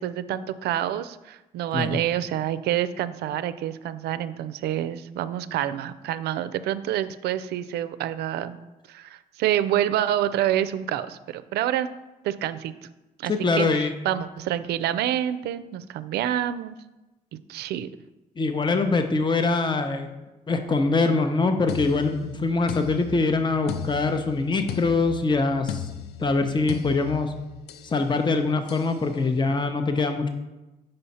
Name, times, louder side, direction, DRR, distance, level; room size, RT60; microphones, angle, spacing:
voice 1, 0.0-8.6 8.9-11.9 12.2-12.7 13.2-16.8 17.5-17.9, right 11 dB, 80° right, 13 dB, 0.4 m, -27 dB
voice 2, 13.3-13.9 18.4-20.1 20.5-25.9 26.2-27.3 27.8-30.3, left 3 dB, 30° left, 7 dB, 0.7 m, -23 dB
sound 1, 21.7-28.0 28.7-29.0, left 9 dB, 85° left, 0.4 m, -36 dB
5.5 x 5.3 x 4.2 m, 1.0 s
supercardioid pair, 65°, 17 cm